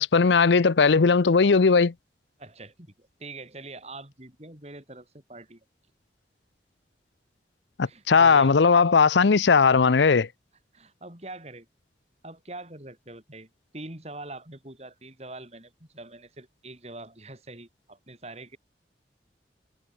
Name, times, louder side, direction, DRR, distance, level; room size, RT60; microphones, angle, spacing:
voice 1, 0.0-1.9 7.8-10.3, left 5 dB, 85° left, 0.6 m, -18 dB
voice 2, 2.4-5.6 7.8-8.6 10.1-10.2 10.7-11.7 12.2-18.6, right 2 dB, 35° right, 4.7 m, -44 dB
head